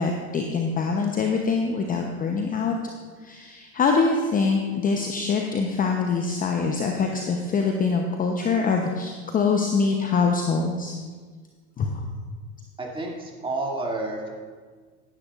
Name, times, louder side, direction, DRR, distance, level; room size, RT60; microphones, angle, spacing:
voice 1, 0.0-2.7 3.2-10.9 11.8-11.9, left 4 dB, 20° left, 3 dB, 0.8 m, -24 dB
voice 2, 12.8-14.3, right 2 dB, 10° right, -2 dB, 2.5 m, -30 dB
16.5 x 10.5 x 2.5 m, 1.5 s
hypercardioid pair, 95°, 44 cm